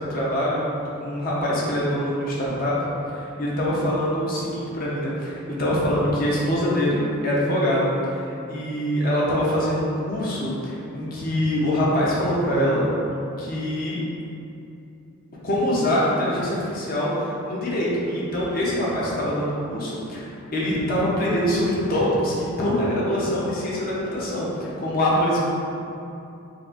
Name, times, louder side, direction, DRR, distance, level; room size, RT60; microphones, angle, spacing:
voice 1, 0.0-2.7 3.1-12.8 13.4-14.0 15.4-25.5, equal, 40° left, -6 dB, 0.6 m, -24 dB
4.1 x 2.5 x 2.4 m, 2.8 s
head